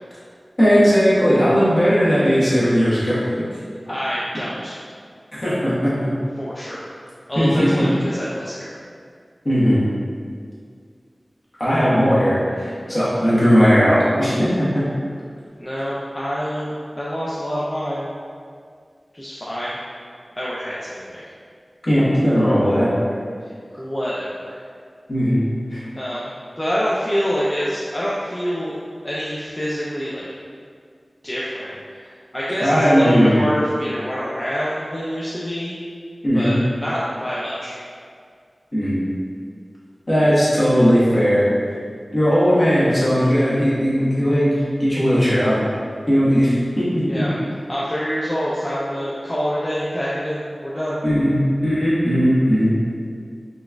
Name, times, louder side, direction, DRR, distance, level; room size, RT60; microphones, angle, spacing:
voice 1, 0.6-3.2 5.3-5.9 7.4-7.9 9.4-9.8 11.6-14.8 21.8-22.9 25.1-25.4 25.7-25.9 32.6-33.4 36.2-36.6 38.7-39.0 40.1-41.4 42.1-45.5 46.1-47.3 51.0-52.8, equal, 45° left, -10 dB, 1.1 m, -17 dB
voice 2, 3.9-4.8 6.4-6.9 7.3-8.8 15.6-18.0 19.1-19.8 20.4-21.3 23.8-24.6 25.9-28.8 29.0-30.2 31.2-31.7 32.3-35.8 36.3-37.8 47.1-47.4 47.7-51.0, equal, 20° left, -8 dB, 0.4 m, -26 dB
4.0 x 2.4 x 2.2 m, 2.1 s
wide cardioid pair, 70°, 0 cm